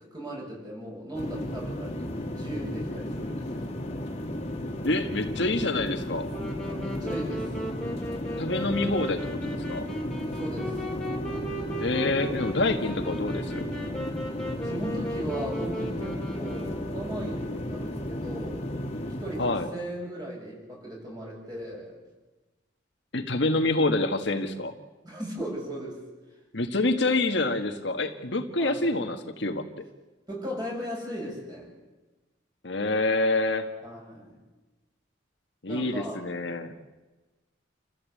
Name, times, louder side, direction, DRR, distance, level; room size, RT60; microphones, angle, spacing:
voice 1, 0.0-3.7 6.7-7.5 10.3-10.8 14.6-18.7 19.2-22.0 25.0-26.0 28.6-28.8 30.3-31.7 33.8-34.4 35.7-36.3, equal, 20° right, -2 dB, 7.8 m, -37 dB
sound 1, 1.1-19.7, left 1 dB, 30° left, 2.5 m, -34 dB
voice 2, 4.8-6.3 8.4-9.9 11.8-13.6 19.4-19.7 23.1-24.7 26.5-29.6 32.6-33.7 35.6-36.7, left 2 dB, 60° left, 5 dB, 1.6 m, -27 dB
Wind instrument woodwind instrument, 6.3-17.2, equal, 5° left, 3.5 m, -37 dB
28.5 x 15.0 x 8.5 m, 1.2 s
head